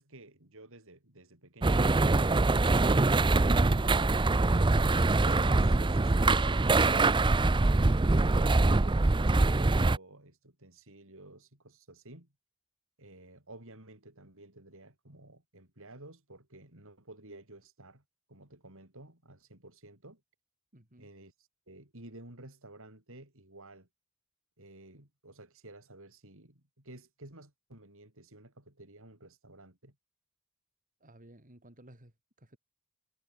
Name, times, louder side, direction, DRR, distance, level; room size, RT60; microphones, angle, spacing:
voice 1, 0.0-3.7 4.5-7.2 7.8-12.3 13.0-18.0 18.3-20.2 21.0-21.3 21.7-23.9 24.6-30.0, right 2 dB, 65° right, 6.3 m, -53 dB
sound 1, 1.6-10.0, right 2 dB, 20° right, 0.6 m, -24 dB
voice 2, 20.7-21.1 31.0-32.6, right 1 dB, 40° right, 4.4 m, -57 dB
head